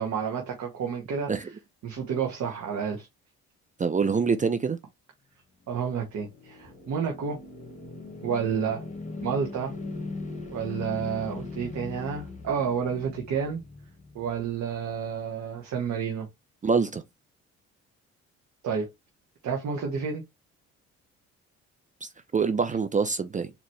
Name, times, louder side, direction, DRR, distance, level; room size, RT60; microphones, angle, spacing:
voice 1, 0.0-1.3 1.8-3.1 5.7-7.4 8.2-8.8 9.2-9.7 10.5-13.6 14.1-16.3 18.6-18.9 19.4-20.2, right 6 dB, 55° right, 1.2 m, -30 dB
voice 2, 3.8-4.8 16.6-17.0 22.0-23.5, right 5 dB, 25° right, 0.5 m, -25 dB
sound 1, 5.6-14.9, left 3 dB, 20° left, 1.7 m, -40 dB
4.1 x 2.9 x 3.1 m
hypercardioid pair, 55°, 34 cm